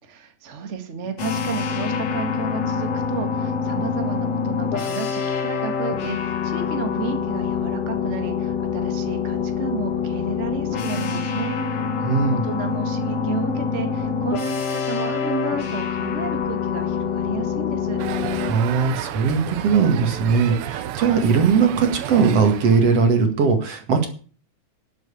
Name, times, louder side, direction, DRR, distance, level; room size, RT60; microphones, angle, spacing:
voice 1, 0.0-11.6 12.3-18.0, right 5 dB, 30° right, 6 dB, 1.7 m, -32 dB
sound 1, 1.2-18.5, left 6 dB, 60° left, 2.6 m, -25 dB
voice 2, 12.0-12.4 18.4-24.1, right 5 dB, 55° right, 5 dB, 2.9 m, -19 dB
sound 2, 18.0-23.1, right 11 dB, 75° right, 1.3 m, -32 dB
12.5 x 7.7 x 8.5 m, 0.41 s
omnidirectional pair, 3.4 m